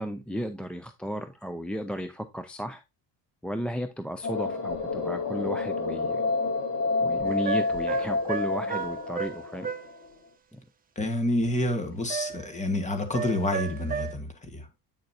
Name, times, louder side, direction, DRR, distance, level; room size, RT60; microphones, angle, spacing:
voice 1, 0.0-2.8 3.4-6.2 7.0-9.7 10.5-10.6, equal, 5° left, 0.3 m, -34 dB
sound 1, 4.2-10.0, left 3 dB, 55° left, 3.6 m, -29 dB
sound 2, 7.3-9.9 12.1-12.6 13.1-14.1, right 7 dB, 25° right, 0.8 m, -34 dB
voice 2, 10.9-14.7, left 1 dB, 20° left, 1.6 m, -28 dB
8.8 x 6.5 x 2.6 m
cardioid pair, 170°, 37 cm